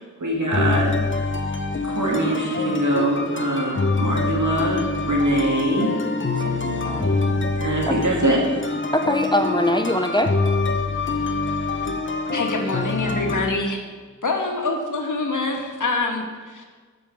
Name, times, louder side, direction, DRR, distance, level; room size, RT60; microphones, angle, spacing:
voice 1, 0.2-0.9 1.8-6.0 6.4-6.5 7.6-8.5, right 1 dB, 70° right, -2 dB, 2.4 m, -23 dB
sound 1, 0.5-13.5, left 3 dB, 40° left, 0.9 m, -25 dB
voice 2, 6.4-7.5 7.9-8.0 8.9-10.3, equal, 15° left, 6 dB, 0.6 m, -23 dB
voice 3, 12.3-13.8 14.2-16.6, left 3 dB, 75° left, 2 dB, 1.4 m, -25 dB
12.5 x 5.4 x 5.0 m, 1.5 s
wide cardioid pair, 55°, 31 cm